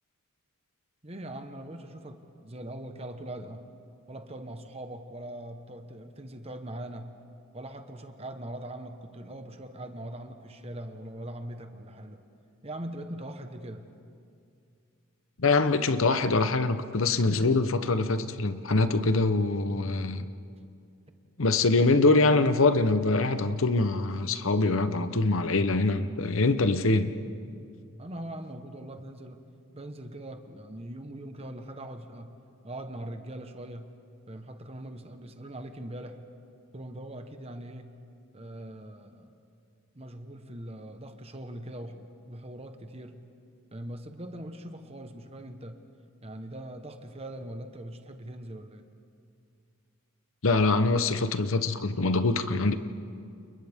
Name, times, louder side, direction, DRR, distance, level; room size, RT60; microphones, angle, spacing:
voice 1, 1.0-3.6 4.1-7.1 7.5-12.2 12.6-13.8 28.0-29.5 29.7-32.3 32.6-33.9 34.3-36.2 36.7-37.9 38.3-39.3 39.9-43.2 43.7-45.8 46.2-48.9, right 1 dB, 30° right, 7 dB, 1.2 m, -41 dB
voice 2, 15.4-20.2 21.4-27.1 50.4-52.8, left 3 dB, 70° left, 11 dB, 0.9 m, -24 dB
29.5 x 29.5 x 3.6 m, 2.4 s
head